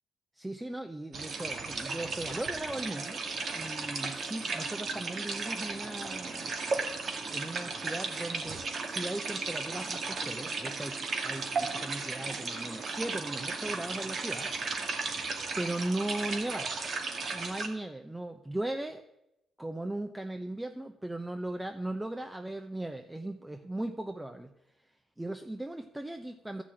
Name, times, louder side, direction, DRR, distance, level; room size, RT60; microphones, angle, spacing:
voice 1, 0.4-3.2 3.5-6.5 7.3-14.5 15.6-16.7 17.3-19.0 19.6-24.5 25.2-26.6, right 1 dB, 10° right, 6 dB, 0.8 m, -37 dB
sound 1, 1.1-17.7, right 4 dB, 55° right, 2.0 m, -35 dB
13.0 x 6.1 x 8.8 m, 0.86 s
cardioid pair, 90°, 0 cm